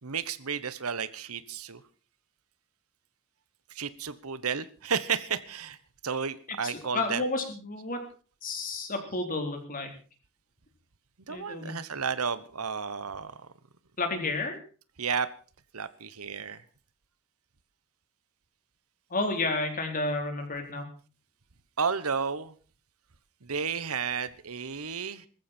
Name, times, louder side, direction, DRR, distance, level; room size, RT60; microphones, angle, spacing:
voice 1, 0.0-1.8 3.7-5.8 6.0-7.2 11.3-13.3 15.0-15.3 15.7-16.6 21.8-22.5 23.4-25.3, right 6 dB, 75° right, 15 dB, 1.2 m, -32 dB
voice 2, 6.6-8.0 8.4-9.9 11.3-11.8 14.0-14.6 19.1-20.9, left 2 dB, 40° left, 4 dB, 4.0 m, -31 dB
20.0 x 14.5 x 4.5 m, 0.39 s
head